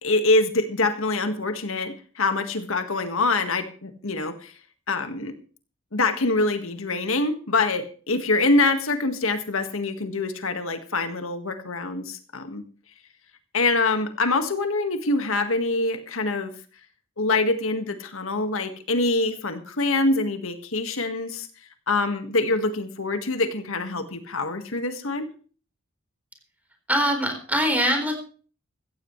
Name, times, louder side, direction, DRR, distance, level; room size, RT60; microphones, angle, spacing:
voice 1, 0.0-4.5 4.9-5.4 5.9-12.6 13.5-16.5 17.2-21.5 21.9-25.3, left 2 dB, 80° left, 8 dB, 1.7 m, -25 dB
voice 2, 26.9-28.2, equal, 10° right, 4 dB, 4.1 m, -23 dB
15.5 x 15.5 x 3.2 m, 0.39 s
head